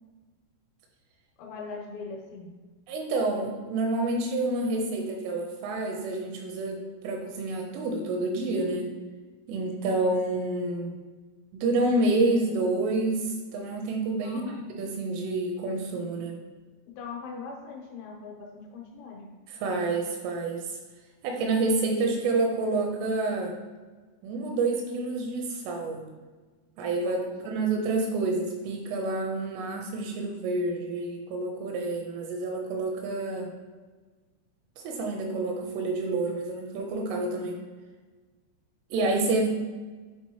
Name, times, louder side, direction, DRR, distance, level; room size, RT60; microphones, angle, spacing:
voice 1, 1.4-2.5 14.2-14.7 17.0-19.3 27.0-27.6, left 4 dB, 85° left, -2 dB, 3.8 m, -41 dB
voice 2, 2.9-8.9 9.5-10.9 11.5-13.2 13.5-14.4 14.8-16.4 19.5-20.6 21.2-23.6 24.2-26.0 26.8-27.2 27.4-33.5 34.8-37.6 38.9-39.5, right 2 dB, 80° right, 1 dB, 3.2 m, -28 dB
10.5 x 4.2 x 3.0 m, 1.3 s
omnidirectional pair, 6.0 m